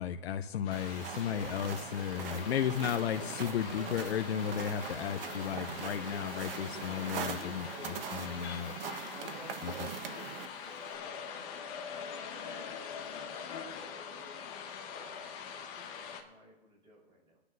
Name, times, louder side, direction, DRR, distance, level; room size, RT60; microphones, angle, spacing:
voice 1, 0.0-8.7 9.6-9.7, left 9 dB, 80° left, 8 dB, 0.7 m, -34 dB
sound 1, 0.6-16.2, left 7 dB, 35° left, 1.3 m, -44 dB
sound 2, 0.7-10.5, right 8 dB, 65° right, 1.3 m, -42 dB
voice 2, 2.1-2.6 4.5-4.8 6.8-7.8 8.7-15.3 15.7-17.4, right 2 dB, 15° right, -3 dB, 5.4 m, -57 dB
Motor vehicle (road) / Engine, 4.7-11.0, right 4 dB, 80° right, 3.7 m, -60 dB
23.5 x 9.9 x 2.7 m, 1.0 s
hypercardioid pair, 145°, 31 cm